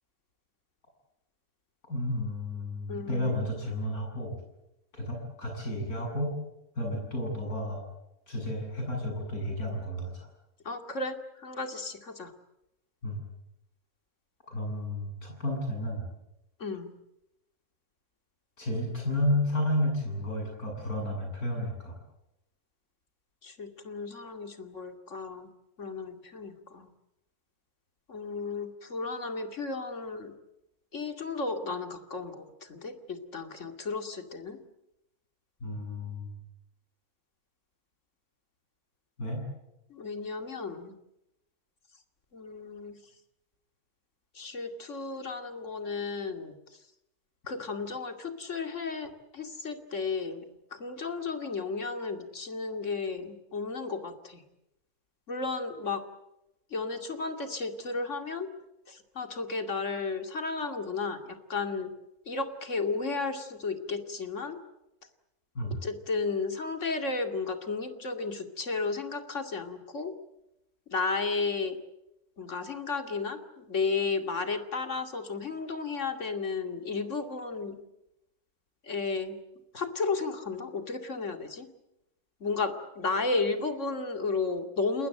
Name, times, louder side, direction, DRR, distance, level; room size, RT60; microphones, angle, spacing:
voice 1, 1.9-4.4 4.9-6.4 6.8-7.8 8.3-10.3 13.0-13.2 14.5-16.1 18.6-22.0 35.6-36.3 39.2-39.4 65.6-65.8, left 1 dB, 85° left, 1 dB, 8.6 m, -32 dB
voice 2, 2.9-3.4 10.6-12.3 16.6-16.9 23.4-25.5 25.8-26.9 28.1-30.3 30.9-34.6 39.9-40.9 42.3-43.0 44.3-46.5 47.5-50.4 50.7-54.4 55.3-56.0 56.7-58.5 58.9-61.9 62.3-64.6 65.8-70.1 70.9-71.8 72.4-77.8 78.8-79.4 79.7-81.7 82.4-85.1, left 4 dB, 55° left, 6 dB, 2.7 m, -33 dB
29.5 x 20.5 x 7.8 m, 0.90 s
omnidirectional pair, 1.5 m